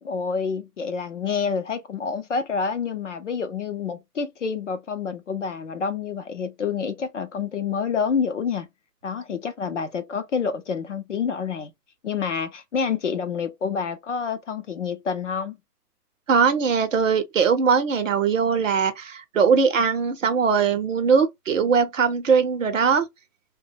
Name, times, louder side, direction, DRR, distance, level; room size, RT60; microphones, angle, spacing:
voice 1, 0.0-8.7 9.0-11.7 12.0-15.6, left 6 dB, 50° left, 0.6 m, -28 dB
voice 2, 16.3-23.1, right 6 dB, 55° right, 0.7 m, -20 dB
2.9 x 2.2 x 2.6 m
hypercardioid pair, 175°, 48 cm